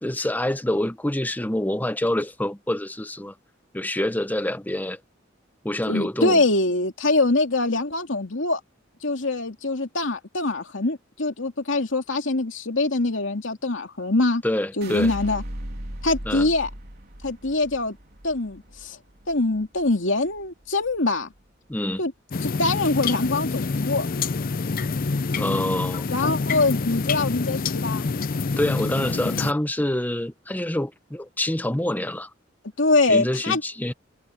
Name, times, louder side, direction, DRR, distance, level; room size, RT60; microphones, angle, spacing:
voice 1, 0.0-3.3 3.7-5.0 5.6-6.4 14.4-15.1 16.3-16.5 21.7-22.0 25.3-26.0 28.6-32.3 33.1-33.9, left 1 dB, 10° left, 0.9 m, -26 dB
voice 2, 5.9-8.6 9.0-14.4 14.8-15.4 16.0-16.7 17.2-18.0 18.2-19.0 19.3-21.3 22.0-22.1 22.4-24.1 26.1-28.1 32.8-33.6, left 2 dB, 75° left, 2.6 m, -23 dB
sound 1, 14.8-21.0 21.4-22.0, equal, 55° right, 3.6 m, -38 dB
sound 2, 22.3-29.5, left 4 dB, 50° left, 0.6 m, -27 dB
head